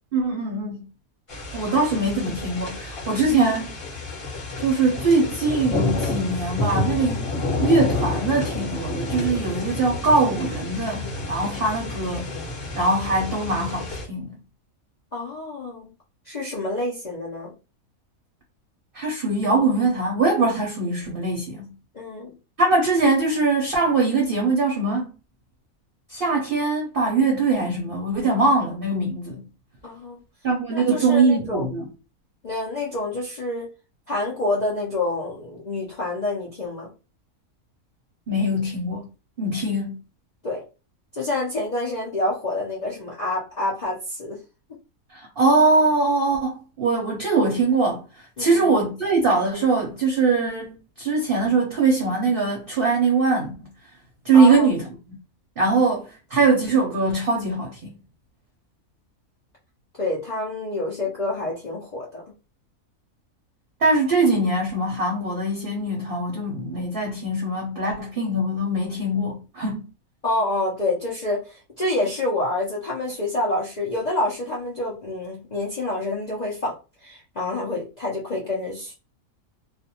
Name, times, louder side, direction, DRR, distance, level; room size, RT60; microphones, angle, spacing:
voice 1, 0.1-0.9 1.5-3.7 4.6-12.3 12.7-14.3 18.9-21.7 22.6-25.1 26.1-29.4 30.4-31.9 38.3-39.1 39.4-40.0 45.1-53.5 54.2-55.2 55.6-57.9 63.8-69.9, right 3 dB, 55° right, 0.7 m, -22 dB
sound 1, 1.3-14.0, left 2 dB, 25° left, 0.9 m, -29 dB
voice 2, 15.1-15.9 16.3-17.5 21.9-22.3 29.8-30.2 30.7-31.7 32.4-33.7 34.1-36.9 40.4-40.6 41.1-44.4 48.4-48.7 54.3-54.7 60.0-62.2 70.2-78.9, left 2 dB, 60° left, 0.4 m, -27 dB
2.4 x 2.1 x 2.7 m
omnidirectional pair, 1.5 m